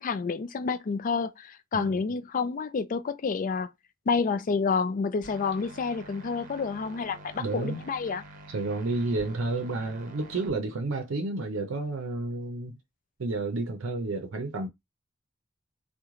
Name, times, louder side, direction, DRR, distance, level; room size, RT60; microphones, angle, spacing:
voice 1, 0.0-3.7 4.1-8.2, left 5 dB, 45° left, 0.4 m, -29 dB
sound 1, 5.2-10.5, right 1 dB, 45° right, 0.7 m, -47 dB
voice 2, 7.4-7.9 8.5-12.8 13.2-14.7, right 2 dB, 90° right, 0.5 m, -31 dB
3.0 x 2.1 x 3.6 m
head